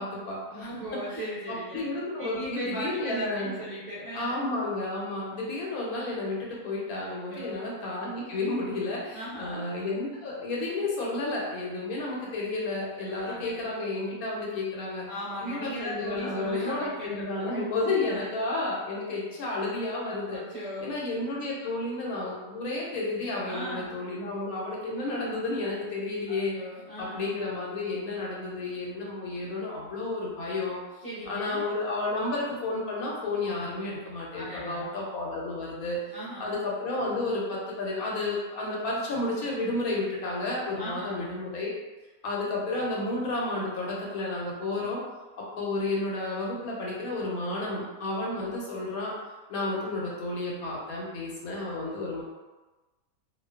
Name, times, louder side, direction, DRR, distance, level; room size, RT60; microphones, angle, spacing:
voice 1, 0.0-3.5 4.1-15.1 15.4-20.4 20.8-26.5 27.0-30.8 31.3-36.0 36.4-41.7 42.2-45.0 45.4-49.2 49.5-52.2, left 2 dB, 90° left, -4 dB, 1.1 m, -31 dB
voice 2, 0.5-1.8 2.2-4.4 7.1-7.6 9.1-9.7 13.1-13.6 15.1-17.6 18.0-18.2 20.3-20.9 23.5-24.0 26.5-27.3 31.0-31.6 34.3-35.0 36.1-36.6 40.8-41.2 48.3-48.6, equal, 35° right, -12 dB, 0.7 m, -37 dB
2.6 x 2.2 x 2.3 m, 1.2 s
omnidirectional pair, 1.5 m